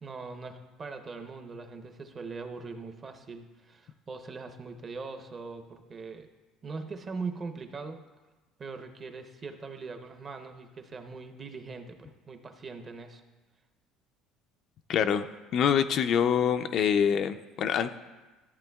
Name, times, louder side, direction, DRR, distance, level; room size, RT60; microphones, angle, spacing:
voice 1, 0.0-6.3 6.6-8.0 8.6-13.2, right 4 dB, 30° right, 6 dB, 0.7 m, -41 dB
voice 2, 14.9-15.3 15.5-18.0, left 8 dB, 50° left, 9 dB, 0.3 m, -25 dB
13.5 x 7.7 x 2.3 m, 1.2 s
cardioid pair, 135°, 0 cm